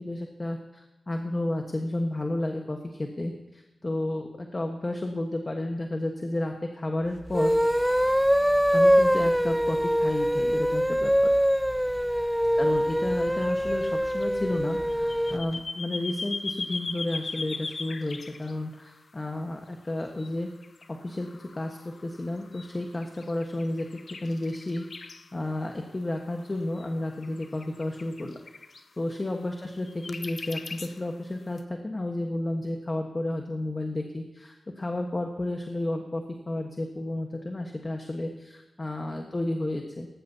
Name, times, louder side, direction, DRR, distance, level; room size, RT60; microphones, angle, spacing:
voice 1, 0.0-7.5 8.7-11.1 12.6-20.5 20.9-23.9 24.2-28.4 29.0-40.1, left 1 dB, 30° left, 3 dB, 1.3 m, -32 dB
sound 1, 7.3-15.4, equal, ahead, 0.4 m, -23 dB
sound 2, 13.4-19.3 20.2-20.3 20.6-25.3 26.3-28.8 29.9-31.2 31.6-31.7, left 4 dB, 60° left, 0.7 m, -39 dB
18.0 x 15.0 x 2.8 m, 1.0 s
cardioid pair, 65°, 0 cm